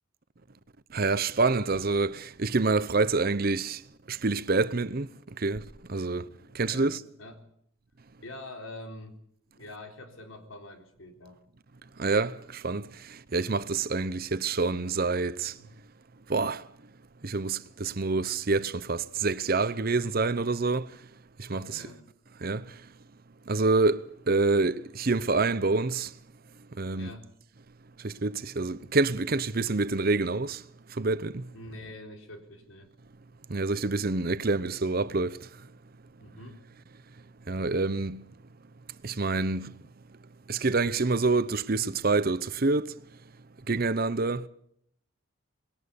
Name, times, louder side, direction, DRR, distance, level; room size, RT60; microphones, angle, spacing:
voice 1, 0.9-3.8 4.1-5.1 5.4-5.6 5.9-7.0 12.0-15.5 16.3-16.6 17.2-20.9 21.4-21.9 22.4-22.8 23.5-26.1 26.8-27.2 28.0-30.6 30.9-31.5 33.5-35.5 37.5-38.2 39.0-39.8 40.5-42.9 43.7-44.5, right 3 dB, 45° right, 0.8 m, -27 dB
voice 2, 8.2-9.2 9.6-11.4 15.6-15.7 21.5-22.1 26.9-27.3 31.5-32.9 36.2-36.6, left 1 dB, 80° left, 3.9 m, -45 dB
21.0 x 18.0 x 7.0 m
head